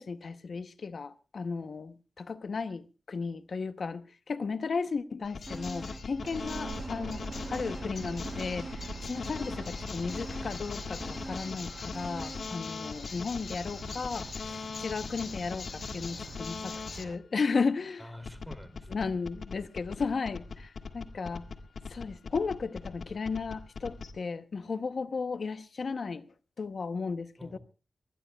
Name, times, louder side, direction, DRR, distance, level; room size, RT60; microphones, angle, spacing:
voice 1, 0.0-18.1 18.9-21.4 21.9-26.3 26.6-27.6, left 4 dB, 65° left, 0.7 m, -35 dB
sound 1, 5.2-17.0 18.2-24.1, left 4 dB, 90° left, 1.6 m, -40 dB
sound 2, 5.5-6.1 6.4-8.0 8.2-12.6 13.0-13.1, right 1 dB, 15° right, 0.7 m, -45 dB
sound 3, 6.2-17.2, right 4 dB, 65° right, 0.9 m, -45 dB
voice 2, 18.0-19.1 27.4-27.6, equal, ahead, 2.5 m, -48 dB
24.5 x 20.0 x 2.2 m
wide cardioid pair, 135°, 0 cm